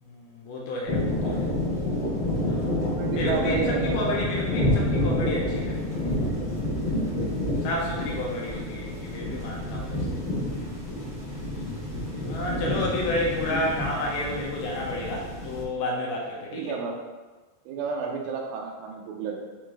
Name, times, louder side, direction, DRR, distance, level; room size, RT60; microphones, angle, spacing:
voice 1, 0.0-1.5 2.5-6.1 7.6-10.2 12.2-16.8, left 1 dB, 75° left, -2 dB, 2.5 m, -31 dB
sound 1, 0.9-15.6, left 1 dB, 55° left, 0.7 m, -28 dB
voice 2, 2.9-4.2 12.5-12.7 16.5-17.0 17.7-19.4, right 6 dB, 90° right, 0 dB, 3.0 m, -31 dB
9.0 x 3.2 x 3.8 m, 1.3 s
omnidirectional pair, 5.0 m